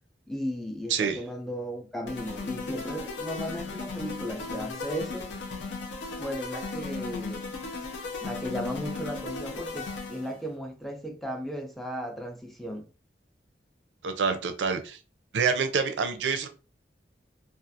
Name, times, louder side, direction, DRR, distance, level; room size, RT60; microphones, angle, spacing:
voice 1, 0.3-5.3 6.2-7.5 8.2-12.9, equal, ahead, 0.4 m, -35 dB
sound 1, 2.1-10.4, left 3 dB, 90° left, 0.6 m, -36 dB
voice 2, 14.0-15.0 15.3-16.5, right 5 dB, 85° right, 0.4 m, -27 dB
2.4 x 2.3 x 2.6 m
head